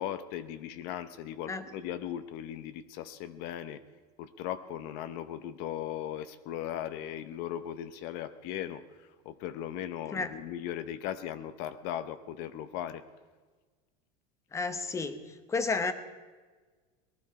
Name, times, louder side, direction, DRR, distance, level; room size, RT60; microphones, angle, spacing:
voice 1, 0.0-3.8 4.2-13.0, left 11 dB, 55° left, 12 dB, 0.9 m, -38 dB
voice 2, 14.5-15.2 15.5-15.9, left 4 dB, 15° left, 11 dB, 0.9 m, -31 dB
18.5 x 12.5 x 4.8 m, 1.4 s
supercardioid pair, 150°, 20 cm